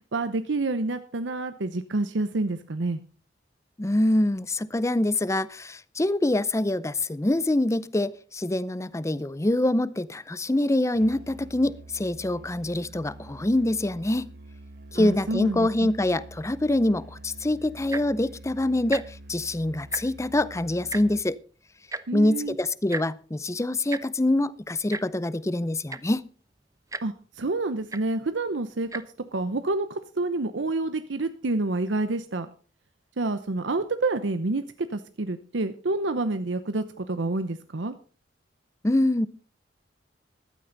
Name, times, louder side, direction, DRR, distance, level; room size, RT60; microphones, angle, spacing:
voice 1, 0.1-3.0 14.9-15.7 22.1-22.6 27.0-29.0 29.3-32.5 33.2-37.9, right 2 dB, 80° right, 10 dB, 0.8 m, -28 dB
voice 2, 3.8-14.3 14.9-21.4 22.1-26.2 38.8-39.3, left 1 dB, 15° left, 18 dB, 0.6 m, -25 dB
Musical instrument, 10.9-21.3, right 1 dB, 60° right, 1.6 m, -46 dB
Tick-tock, 17.8-18.2 18.8-19.0 19.3-19.5 19.8-20.3 20.9-21.0 21.9-22.0 22.9-23.0 23.9-24.0 24.9-25.0 25.6-25.7 25.9-26.2 26.9-27.0 27.9-28.0 28.8-29.0 29.7-29.8, right 3 dB, 20° right, 0.7 m, -34 dB
15.0 x 12.5 x 4.0 m, 0.39 s
head